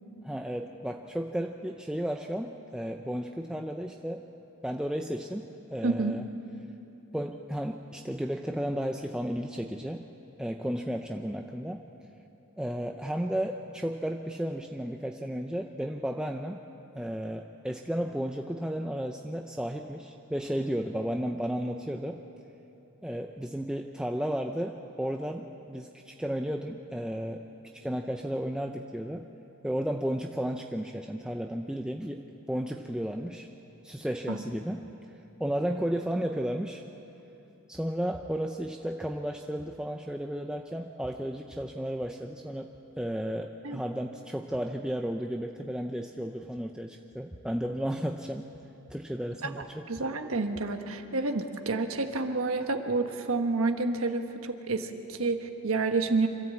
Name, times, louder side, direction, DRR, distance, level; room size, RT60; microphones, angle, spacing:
voice 1, 0.2-4.2 4.6-6.2 7.1-10.0 10.4-11.8 12.6-16.6 17.0-22.2 23.0-27.4 27.7-29.3 29.6-32.2 32.5-33.5 33.8-36.8 37.7-42.7 43.0-48.5 48.9-49.9, equal, 5° right, 3 dB, 0.5 m, -33 dB
voice 2, 5.8-6.2 34.3-34.4 43.6-43.8 49.4-49.5 49.9-56.3, right 3 dB, 65° right, 6 dB, 1.3 m, -29 dB
26.0 x 14.0 x 8.4 m, 3.0 s
head